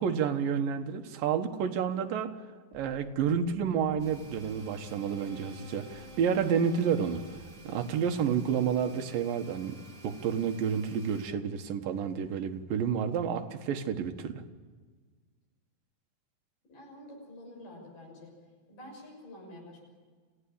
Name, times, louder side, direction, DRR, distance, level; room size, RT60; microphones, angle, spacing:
voice 1, 0.0-2.3 2.7-7.2 7.6-9.8 10.0-14.4, right 7 dB, 75° right, 5 dB, 3.0 m, -30 dB
sound 1, 2.7-9.0, left 1 dB, 10° left, 5.6 m, -52 dB
sound 2, 4.0-11.3, right 3 dB, 40° right, 4.2 m, -53 dB
voice 2, 16.7-18.3 18.7-19.8, left 1 dB, 70° left, 1 dB, 7.9 m, -48 dB
27.0 x 16.0 x 8.7 m, 1.5 s
omnidirectional pair, 4.1 m